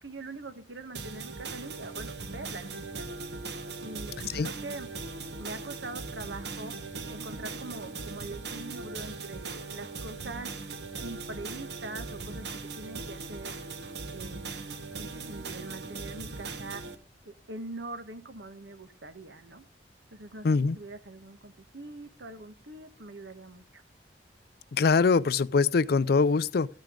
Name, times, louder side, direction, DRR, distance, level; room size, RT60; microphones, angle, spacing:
voice 1, 0.0-3.1 3.8-4.9 5.4-6.7 7.1-10.5 11.0-12.4 12.8-13.5 14.1-14.5 15.0-16.8 17.2-19.6 20.1-23.8, right 2 dB, 85° right, 1.4 m, -43 dB
sound 1, 0.9-16.9, right 3 dB, 65° right, 1.3 m, -39 dB
voice 2, 20.4-20.8 24.7-26.7, left 4 dB, 60° left, 0.4 m, -23 dB
14.0 x 9.0 x 3.8 m
head